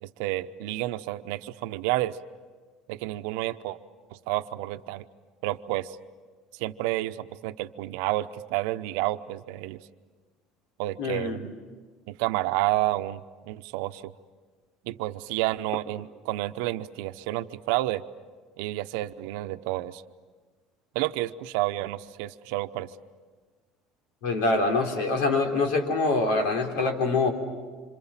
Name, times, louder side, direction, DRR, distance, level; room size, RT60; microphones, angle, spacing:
voice 1, 0.0-2.2 2.9-3.8 4.1-5.0 5.4-6.0 6.5-9.8 10.8-11.5 12.1-14.1 14.8-18.0 18.6-20.0 20.9-22.9, right 16 dB, 75° right, 10 dB, 0.8 m, -30 dB
voice 2, 11.0-11.4 24.2-27.3, left 3 dB, 75° left, 4 dB, 3.8 m, -24 dB
27.0 x 26.5 x 7.4 m, 1.4 s
cardioid pair, 175°, 0 cm